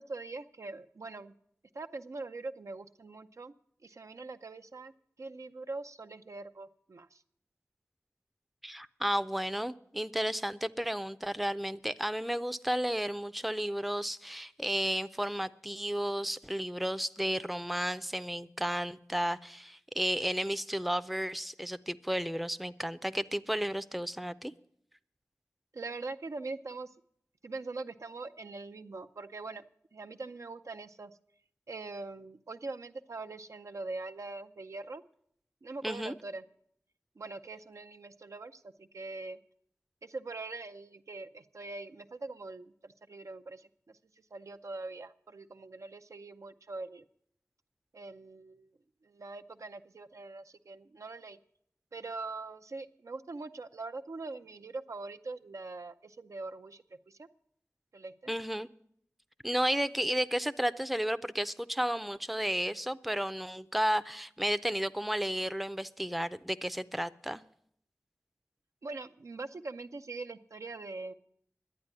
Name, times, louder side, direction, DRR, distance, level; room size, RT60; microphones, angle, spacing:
voice 1, 0.0-1.3 1.7-3.5 3.8-4.9 5.2-7.2 25.7-26.9 27.4-29.6 29.9-31.2 31.7-35.0 35.6-36.4 37.2-39.4 40.0-44.0 44.3-47.1 47.9-51.4 51.9-57.3 57.9-58.3 68.8-71.1, right 3 dB, 75° right, 8 dB, 0.5 m, -43 dB
voice 2, 8.6-24.5 35.8-36.1 58.3-58.7 59.4-67.4, equal, ahead, 13 dB, 0.5 m, -33 dB
11.0 x 8.8 x 9.7 m, 0.68 s
wide cardioid pair, 50°, 5 cm